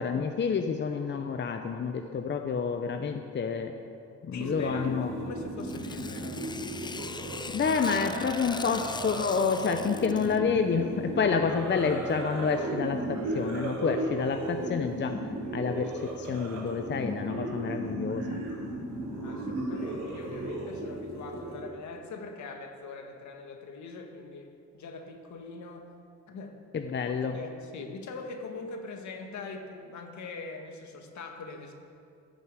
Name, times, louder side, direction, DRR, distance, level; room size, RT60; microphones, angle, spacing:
voice 1, 0.0-3.8 4.2-5.1 7.5-15.2 15.5-18.4 26.7-27.4, left 5 dB, 40° left, 6 dB, 0.7 m, -29 dB
voice 2, 4.3-6.6 19.2-25.9 26.3-26.6 27.1-31.7, left 3 dB, 70° left, 4 dB, 1.7 m, -42 dB
sound 1, 4.4-21.6, right 2 dB, 90° right, 3.8 m, -35 dB
Tearing, 5.6-10.4, left 4 dB, 15° left, 0.4 m, -41 dB
13.5 x 6.8 x 7.6 m, 2.4 s
cardioid pair, 90°, 30 cm